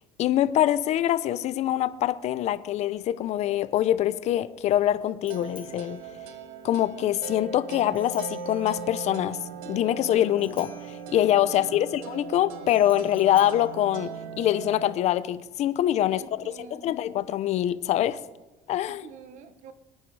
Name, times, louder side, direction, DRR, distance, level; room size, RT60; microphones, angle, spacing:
voice 1, 0.0-6.0 6.6-9.4 9.7-16.2 16.6-18.2 18.7-19.1, left 12 dB, 50° left, 15 dB, 0.8 m, -24 dB
Bicycle bell, 3.7-14.7, left 7 dB, 35° left, 2.8 m, -54 dB
sound 1, 5.3-14.9, right 6 dB, 90° right, 1.1 m, -39 dB
voice 2, 11.5-11.9 16.1-17.0 18.9-19.7, right 6 dB, 60° right, 11 dB, 1.3 m, -47 dB
23.5 x 9.7 x 4.8 m, 1.1 s
cardioid pair, 130°, 14 cm